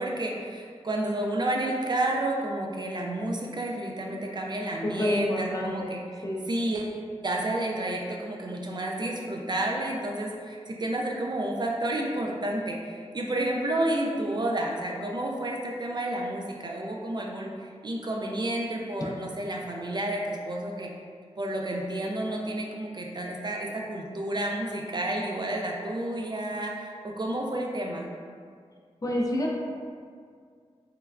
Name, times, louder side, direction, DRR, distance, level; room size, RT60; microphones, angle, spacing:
voice 1, 0.0-6.0 6.5-7.0 7.2-20.9 21.4-28.1, right 1 dB, 40° right, -1 dB, 0.3 m, -30 dB
voice 2, 4.8-6.0 6.2-6.5 29.0-29.5, equal, 30° left, -2 dB, 0.4 m, -28 dB
3.2 x 2.2 x 2.3 m, 2.1 s
cardioid pair, 45°, 12 cm